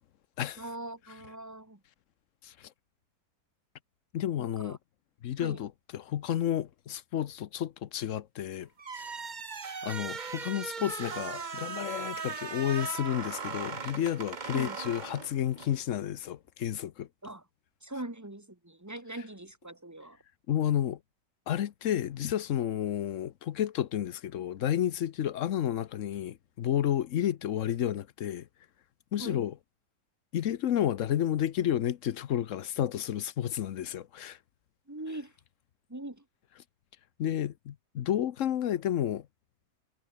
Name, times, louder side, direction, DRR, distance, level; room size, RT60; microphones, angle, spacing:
voice 1, 0.6-1.8 4.4-4.8 5.4-5.6 14.5-14.8 17.2-17.5 17.8-20.2 29.2-29.5 34.9-35.3 35.9-36.3, right 1 dB, 10° right, 2.3 m, -41 dB
voice 2, 4.1-4.8 5.2-8.7 9.0-9.2 9.8-17.1 20.5-21.0 21.5-28.5 29.1-29.5 30.3-34.4 37.2-39.3, left 10 dB, 60° left, 1.0 m, -31 dB
sound 1, 8.8-15.8, right 5 dB, 30° right, 1.1 m, -38 dB
omnidirectional pair, 1.7 m